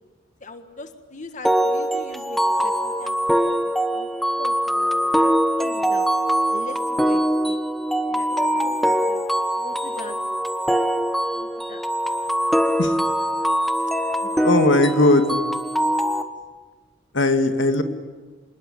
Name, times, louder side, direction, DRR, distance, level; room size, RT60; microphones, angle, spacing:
voice 1, 0.4-3.2 3.4-4.1 4.4-6.1 6.5-7.6 8.1-9.2 9.6-10.2 11.3-11.8, left 2 dB, 40° left, 7 dB, 1.7 m, -41 dB
sound 1, 1.4-16.2, equal, ahead, 1.1 m, -22 dB
voice 2, 14.4-15.4 17.1-17.8, left 2 dB, 90° left, 7 dB, 2.0 m, -18 dB
27.0 x 20.5 x 10.0 m, 1.4 s
head